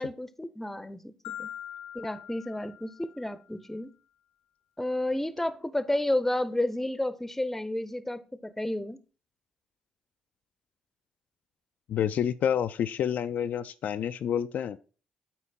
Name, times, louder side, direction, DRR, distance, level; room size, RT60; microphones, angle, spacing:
voice 1, 0.0-1.5 1.9-3.9 4.8-9.0, left 1 dB, 10° left, 0.7 m, -31 dB
Marimba xylophone, 1.2-3.4, left 11 dB, 90° left, 0.9 m, -43 dB
voice 2, 11.9-14.8, left 9 dB, 65° left, 0.4 m, -28 dB
8.5 x 4.4 x 4.3 m
hypercardioid pair, 55°, 3 cm